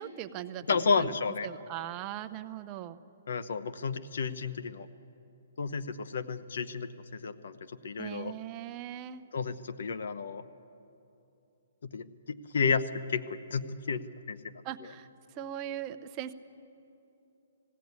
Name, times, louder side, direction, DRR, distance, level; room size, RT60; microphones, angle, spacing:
voice 1, 0.0-1.1 1.4-3.0 8.0-9.2 14.6-15.1 15.4-16.3, right 11 dB, 25° right, 8 dB, 0.6 m, -39 dB
voice 2, 0.7-1.5 3.3-4.9 5.6-7.6 7.8-8.3 9.3-10.4 11.9-14.0 14.3-14.5, left 5 dB, 70° left, 13 dB, 0.9 m, -32 dB
19.5 x 16.0 x 9.5 m, 2.8 s
hypercardioid pair, 165°, 0 cm